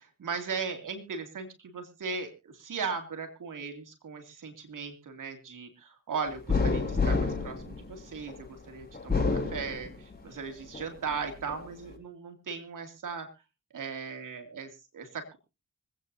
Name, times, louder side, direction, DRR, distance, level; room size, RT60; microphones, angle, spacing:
voice 1, 0.0-13.3 13.7-15.4, right 5 dB, 75° right, 6 dB, 2.6 m, -38 dB
sound 1, 6.5-8.4 8.9-10.3 10.7-11.6, left 4 dB, 30° left, 6.4 m, -29 dB
25.0 x 9.0 x 2.7 m, 0.29 s
cardioid pair, 45°, 32 cm